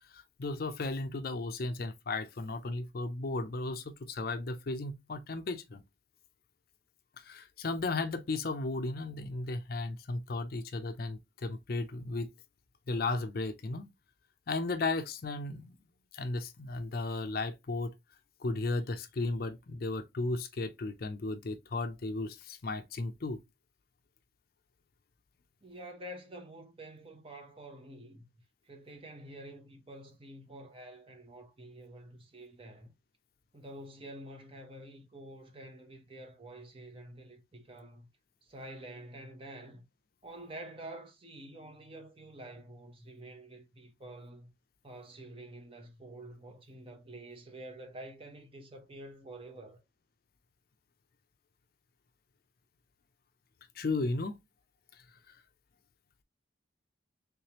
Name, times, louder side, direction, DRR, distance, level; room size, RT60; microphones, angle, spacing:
voice 1, 0.1-5.8 7.2-12.3 12.9-13.9 14.5-15.8 16.1-17.9 18.4-23.4 53.8-54.4 54.9-55.4, left 3 dB, 55° left, 0.5 m, -35 dB
voice 2, 25.6-28.3 28.6-32.9 33.5-38.1 38.4-39.8 40.2-44.5 44.8-49.8, right 1 dB, 30° right, 0.8 m, -48 dB
3.3 x 3.3 x 2.8 m
head